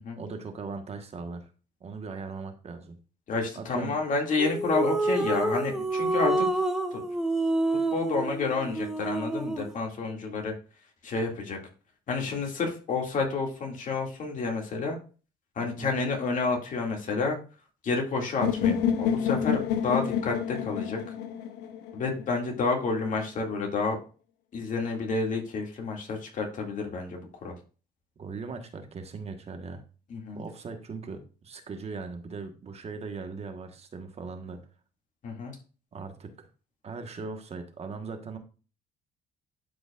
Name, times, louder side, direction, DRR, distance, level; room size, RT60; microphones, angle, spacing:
voice 1, 0.2-1.5 1.8-3.0 3.5-3.9 15.6-15.9 28.2-29.8 30.3-34.6 35.9-36.5 36.8-38.4, right 4 dB, 40° right, 6 dB, 1.3 m, -39 dB
voice 2, 3.3-6.5 6.9-7.0 7.9-10.5 11.0-11.6 12.1-15.0 15.6-17.4 17.8-21.0 21.9-24.0 24.5-27.5 30.1-30.4 35.2-35.6, left 4 dB, 50° left, 1 dB, 2.3 m, -29 dB
sound 1, 4.4-9.7, right 2 dB, 5° right, 0.9 m, -28 dB
sound 2, 18.4-22.4, left 8 dB, 90° left, 1.0 m, -28 dB
12.0 x 5.1 x 2.4 m, 0.36 s
cardioid pair, 110°, 17 cm